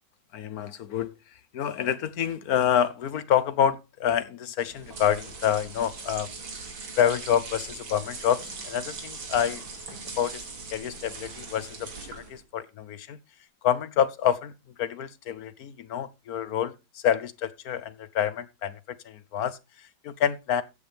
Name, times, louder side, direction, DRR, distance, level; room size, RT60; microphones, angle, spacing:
voice 1, 0.3-1.1 1.5-6.3 7.0-9.6 10.2-10.4 10.7-13.2 13.6-14.5 14.8-20.6, left 9 dB, 60° left, 1.2 m, -27 dB
sound 1, 4.6-12.4, right 4 dB, 75° right, 3.2 m, -40 dB
15.0 x 8.6 x 3.4 m
omnidirectional pair, 2.2 m